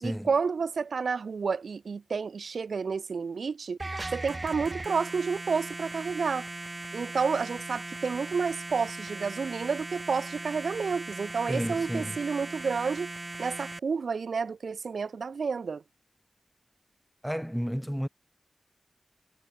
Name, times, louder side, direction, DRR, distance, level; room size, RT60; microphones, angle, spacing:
voice 1, 0.0-3.8 4.1-6.5 6.9-13.1 13.4-15.8, right 5 dB, 85° right, 0.6 m, -30 dB
sound 1, 3.8-13.8, right 2 dB, 30° right, 1.9 m, -39 dB
voice 2, 11.5-12.2 17.2-18.1, equal, ahead, 0.4 m, -31 dB
wide cardioid pair, 110°, 0 cm